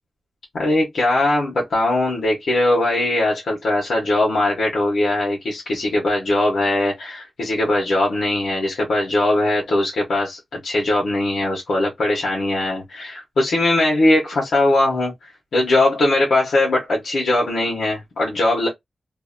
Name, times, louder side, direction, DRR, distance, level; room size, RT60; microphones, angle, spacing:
voice 1, 0.5-18.7, left 2 dB, 80° left, 0.9 m, -20 dB
2.6 x 2.1 x 2.4 m
wide cardioid pair, 145°, 0 cm